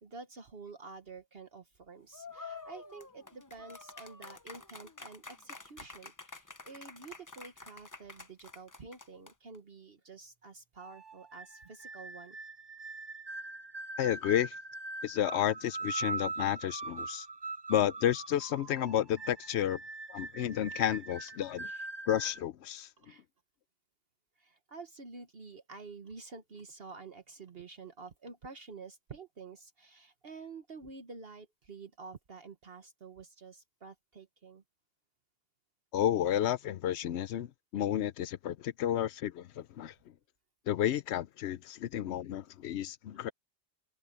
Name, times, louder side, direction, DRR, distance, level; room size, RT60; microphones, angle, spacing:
voice 1, 0.0-12.4 21.6-21.9 23.0-23.2 24.4-34.6, right 4 dB, 60° right, 1.5 m, -49 dB
sound 1, 2.1-9.6, left 3 dB, 20° left, 0.8 m, -49 dB
sound 2, 10.8-22.4, right 3 dB, 25° right, 0.7 m, -42 dB
voice 2, 14.0-14.5 15.0-17.3 17.7-19.8 20.1-21.7 22.1-22.9 35.9-39.9 40.7-43.3, left 11 dB, 80° left, 0.9 m, -31 dB
omnidirectional pair, 1.1 m